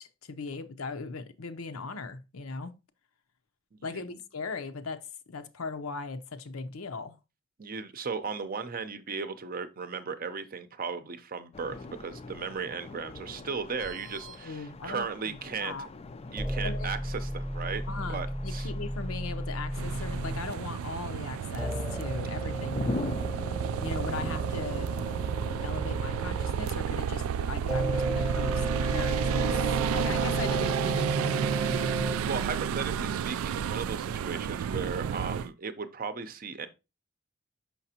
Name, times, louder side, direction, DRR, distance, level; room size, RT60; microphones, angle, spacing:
voice 1, 0.0-2.7 3.8-5.0 5.3-7.2 14.4-15.9 16.6-16.9 17.9-23.0 23.8-24.9 25.6-29.6 29.9-32.1, left 4 dB, 85° left, 0.7 m, -38 dB
voice 2, 3.7-4.2 7.6-15.9 16.3-17.8 18.1-18.7 32.2-36.7, right 5 dB, 45° right, 0.6 m, -36 dB
sound 1, 11.5-29.5, left 2 dB, 30° left, 0.4 m, -44 dB
sound 2, 13.8-14.4 16.4-20.5 21.6-26.6 27.7-32.2, right 1 dB, 5° right, 0.8 m, -34 dB
sound 3, 19.7-35.5, right 8 dB, 80° right, 0.3 m, -31 dB
5.9 x 5.7 x 2.8 m
head